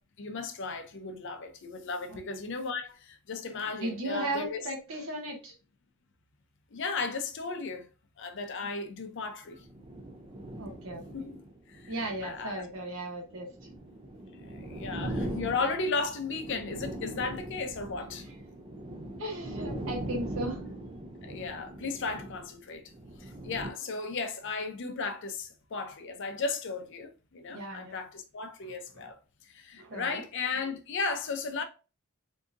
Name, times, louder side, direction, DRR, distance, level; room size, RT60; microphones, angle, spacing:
voice 1, 0.2-4.6 6.7-7.9 8.2-9.6 11.1-11.4 11.8-11.9 12.2-12.6 14.4-18.2 21.2-22.8 23.2-29.2 29.5-31.6, left 4 dB, 55° left, 0.5 m, -35 dB
voice 2, 3.8-5.5 10.6-11.0 11.9-13.5 19.2-20.6 27.5-28.0 29.8-30.2, right 1 dB, 65° right, 1.0 m, -36 dB
sound 1, 9.5-23.7, right 1 dB, 25° right, 0.4 m, -40 dB
3.7 x 2.7 x 2.5 m
head